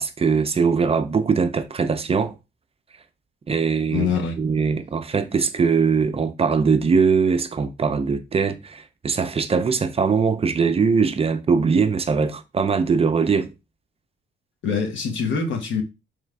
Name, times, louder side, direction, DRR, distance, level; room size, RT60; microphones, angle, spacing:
voice 1, 0.0-2.3 3.5-4.1 4.4-13.5, right 5 dB, 30° right, 0.5 m, -21 dB
voice 2, 3.9-4.3 14.6-15.8, left 5 dB, 75° left, 1.1 m, -24 dB
3.7 x 3.3 x 3.3 m
cardioid pair, 90°, 20 cm